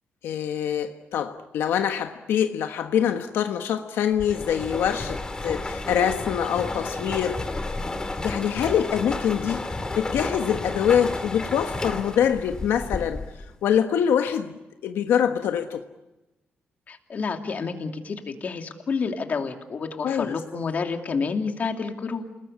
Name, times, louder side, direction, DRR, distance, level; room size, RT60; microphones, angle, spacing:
voice 1, 0.2-7.5 8.2-13.2 13.6-15.8 20.0-20.4, left 9 dB, 90° left, 1.3 m, -25 dB
sound 1, 4.2-13.5, left 2 dB, 20° left, 2.5 m, -32 dB
voice 2, 16.9-22.2, left 5 dB, 45° left, 2.7 m, -29 dB
29.0 x 20.0 x 9.8 m
cardioid pair, 130°, 4 cm